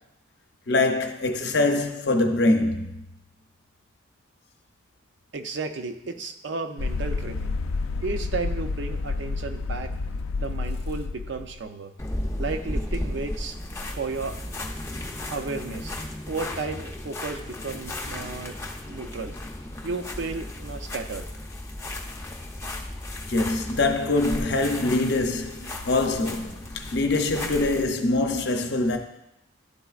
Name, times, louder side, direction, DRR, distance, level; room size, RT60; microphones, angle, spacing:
voice 1, 0.7-2.9 23.3-29.0, left 2 dB, 55° left, 0.7 m, -24 dB
voice 2, 5.3-7.5 8.0-9.9 10.4-11.9 12.4-13.6 14.0-14.4 15.3-15.9 16.3-18.6 18.9-19.3 19.8-21.3, right 4 dB, 60° right, 0.5 m, -33 dB
sound 1, 6.8-11.6, left 3 dB, 90° left, 0.4 m, -30 dB
sound 2, 12.0-27.9, left 1 dB, 15° left, 0.5 m, -35 dB
11.0 x 4.0 x 2.4 m
head